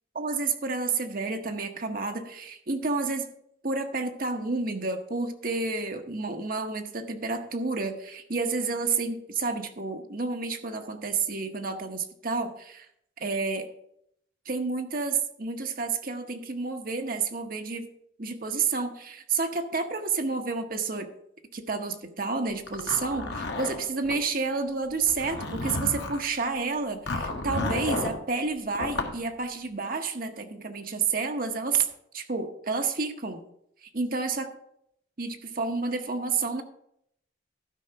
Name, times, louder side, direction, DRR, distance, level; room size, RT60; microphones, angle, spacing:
voice 1, 0.1-3.3 3.6-12.9 13.2-13.7 14.5-17.9 18.2-21.1 21.5-31.9 32.1-33.4 33.8-34.5 35.2-36.6, right 4 dB, 45° right, 5 dB, 0.9 m, -30 dB
Zipper (clothing), 22.7-24.2 25.0-26.2 27.1-28.2 28.7-29.2, left 2 dB, 65° left, 1.2 m, -31 dB
12.0 x 4.9 x 5.6 m, 0.74 s
head